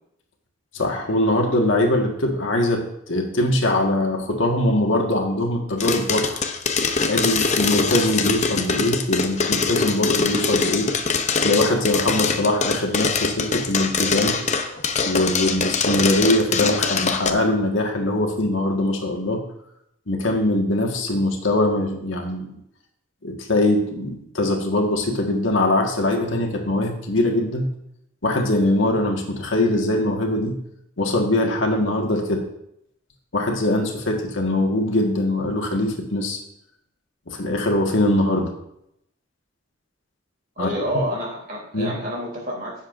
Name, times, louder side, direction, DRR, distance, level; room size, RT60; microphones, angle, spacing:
voice 1, 0.7-6.4 7.1-10.9 11.4-14.4 14.6-19.4 20.1-22.6 23.2-27.7 28.2-30.6 31.0-32.4 33.3-36.4 37.3-38.5 40.6-40.7 41.7-41.9, left 1 dB, 70° left, 2 dB, 1.7 m, -22 dB
sound 1, 5.8-17.3, left 5 dB, 35° left, 0.7 m, -23 dB
voice 2, 40.6-42.8, equal, 45° right, -3 dB, 3.4 m, -28 dB
16.5 x 7.3 x 2.6 m, 0.77 s
head